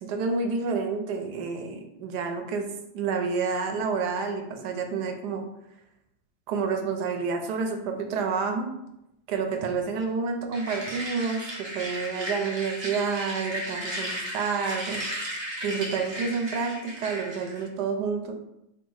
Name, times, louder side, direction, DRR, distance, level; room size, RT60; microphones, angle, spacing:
voice 1, 0.0-2.7 2.9-5.4 6.5-8.7 9.3-15.0 15.6-18.3, right 5 dB, 70° right, 4 dB, 1.1 m, -29 dB
sound 1, 10.5-17.7, equal, 40° right, 0.3 m, -35 dB
4.6 x 2.4 x 4.6 m, 0.83 s
omnidirectional pair, 2.0 m